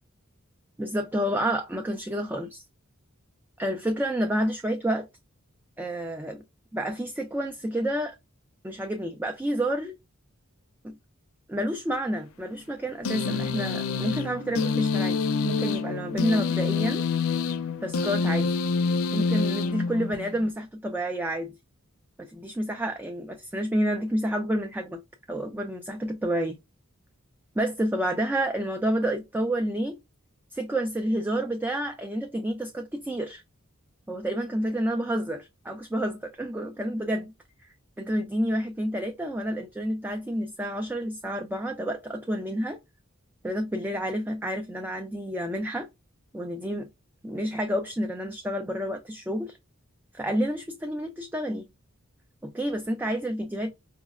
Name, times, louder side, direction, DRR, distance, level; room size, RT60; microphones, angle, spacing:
voice 1, 0.8-2.6 3.6-5.1 5.8-6.4 6.7-8.2 8.6-9.9 10.8-11.0 11.5-15.2 15.4-17.0 17.8-18.5 19.1-21.6 22.2-25.0 25.3-26.6 27.6-30.0 30.5-33.4 34.1-37.3 38.0-42.8 43.4-45.9 46.3-46.9 47.2-49.6 50.1-51.7 52.4-53.7, equal, 10° right, 0.4 m, -29 dB
sound 1, 13.0-20.5, left 5 dB, 80° left, 0.4 m, -27 dB
5.4 x 2.0 x 2.4 m
head